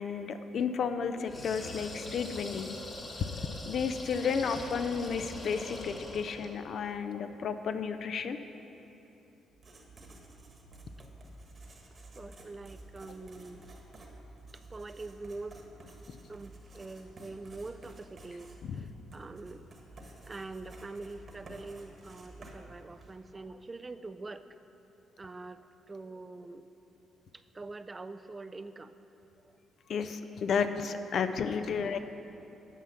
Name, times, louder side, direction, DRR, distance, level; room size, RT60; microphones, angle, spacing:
voice 1, 0.0-2.7 3.7-8.4 16.1-16.2 18.6-18.9 29.9-32.0, left 6 dB, 60° left, 10 dB, 0.4 m, -32 dB
sound 1, 1.2-6.6, left 1 dB, 35° left, 1.3 m, -42 dB
Writing, 9.5-23.3, right 2 dB, 40° right, 1.3 m, -52 dB
voice 2, 12.2-13.7 14.7-15.6 16.3-18.9 19.1-19.6 20.3-24.6 25.2-25.6 25.9-26.6 27.5-28.9 31.7-31.9, right 3 dB, 25° right, 10 dB, 0.3 m, -44 dB
9.0 x 5.7 x 6.2 m, 3.0 s
cardioid pair, 90°, 0 cm